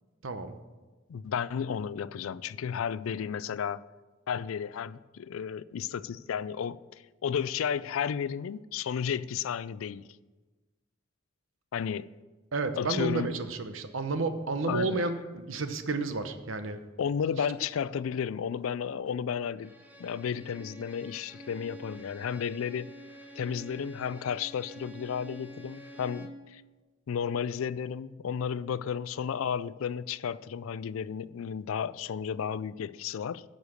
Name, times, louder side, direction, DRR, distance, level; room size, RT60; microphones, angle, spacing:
voice 1, 0.2-0.6 12.5-16.8, right 3 dB, 75° right, 0.9 m, -31 dB
voice 2, 1.1-3.8 4.3-10.1 11.7-12.1 12.8-13.4 14.7-15.0 17.0-19.7 20.0-22.9 23.3-26.6 27.1-33.4, left 7 dB, 90° left, 0.4 m, -33 dB
Bowed string instrument, 19.6-26.5, equal, 10° right, 0.9 m, -48 dB
10.5 x 6.6 x 6.4 m
head